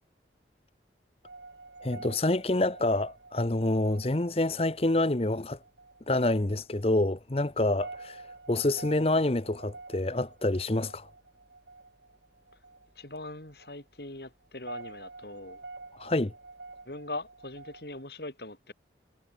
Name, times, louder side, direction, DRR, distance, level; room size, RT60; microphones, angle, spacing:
sound 1, 1.2-18.0, right 3 dB, 80° right, 5.5 m, -49 dB
voice 1, 1.8-5.6 6.1-8.2 8.5-11.1 16.0-16.3, left 2 dB, 35° left, 0.9 m, -27 dB
voice 2, 13.0-15.6 16.9-18.7, left 2 dB, 60° left, 3.5 m, -41 dB
head